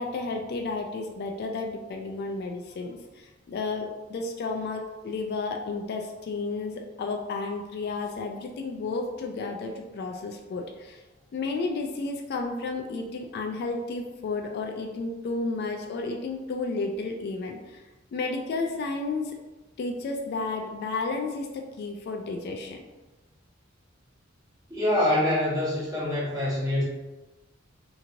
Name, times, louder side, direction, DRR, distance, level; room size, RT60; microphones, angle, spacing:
voice 1, 0.0-11.0 11.3-17.8 18.1-19.3 19.8-21.5 21.8-22.8, left 3 dB, 55° left, 3 dB, 0.3 m, -32 dB
voice 2, 24.7-26.8, left 1 dB, 15° right, -8 dB, 1.2 m, -25 dB
2.9 x 2.8 x 2.5 m, 1.1 s
head